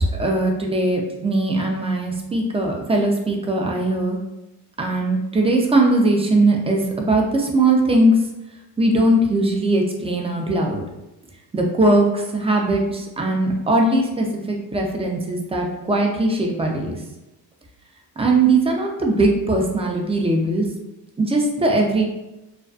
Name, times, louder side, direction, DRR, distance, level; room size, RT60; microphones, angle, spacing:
voice 1, 0.2-4.2 4.8-8.2 8.8-10.8 11.5-17.0 18.2-20.7 21.2-22.0, right 2 dB, 15° right, 0 dB, 0.4 m, -20 dB
2.5 x 2.3 x 2.3 m, 0.98 s
cardioid pair, 80°, 40 cm